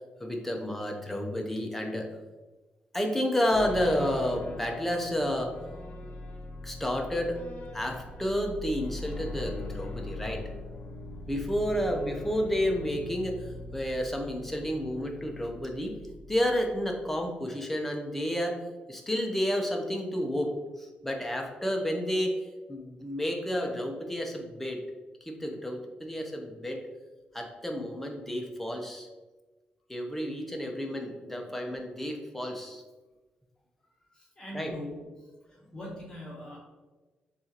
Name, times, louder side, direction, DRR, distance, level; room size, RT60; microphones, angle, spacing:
voice 1, 0.2-2.1 2.9-5.6 6.6-7.4 7.7-10.5 11.3-16.0 16.3-18.6 18.9-22.4 22.7-24.8 25.2-26.8 27.3-29.1 29.9-32.8 34.5-34.7, equal, 5° left, 2 dB, 0.6 m, -31 dB
sound 1, 3.5-17.2, left 2 dB, 50° left, 0.6 m, -41 dB
voice 2, 34.1-35.0 35.7-36.6, left 1 dB, 25° left, -5 dB, 1.0 m, -41 dB
6.7 x 2.5 x 2.8 m, 1.2 s
wide cardioid pair, 140°, 3 cm